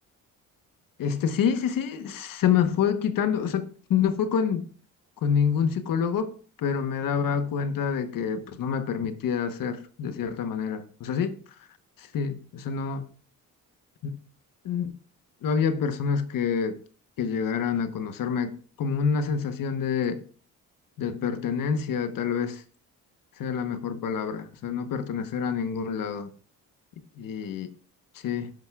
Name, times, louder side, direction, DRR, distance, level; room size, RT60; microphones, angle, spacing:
voice 1, 1.0-4.7 5.2-11.7 12.0-13.1 14.0-14.1 14.6-14.9 15.4-16.8 17.2-20.2 21.0-22.6 23.4-26.3 27.2-27.7 28.1-28.5, left 7 dB, 70° left, 1.1 m, -27 dB
12.0 x 10.5 x 2.3 m
cardioid pair, 130°, 35 cm